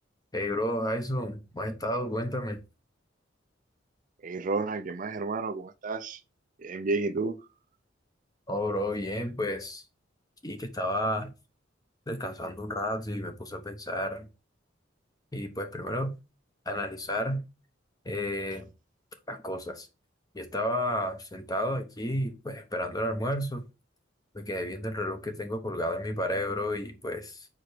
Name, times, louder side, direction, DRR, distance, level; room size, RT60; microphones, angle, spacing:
voice 1, 0.3-2.6 8.5-9.8 10.4-11.3 12.1-14.3 15.3-16.2 16.7-17.4 18.0-18.7 19.3-19.9 20.3-23.6 24.3-27.5, left 1 dB, 20° left, 0.9 m, -32 dB
voice 2, 4.2-6.2 6.6-7.4, right 3 dB, 45° right, 0.5 m, -31 dB
5.0 x 4.6 x 5.0 m
head